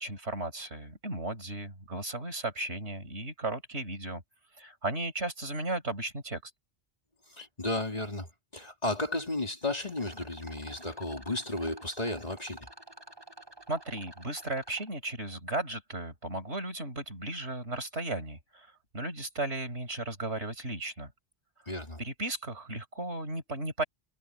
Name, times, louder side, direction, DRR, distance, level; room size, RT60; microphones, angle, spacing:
voice 1, 0.0-4.2 4.6-6.5 13.7-18.7 18.9-21.1 22.0-23.8, right 2 dB, 90° right, 5.7 m, -35 dB
voice 2, 7.4-12.7 21.7-22.0, left 2 dB, 35° left, 3.1 m, -34 dB
Rattle, 9.9-14.9, right 1 dB, 20° right, 5.1 m, -50 dB
omnidirectional pair, 1.1 m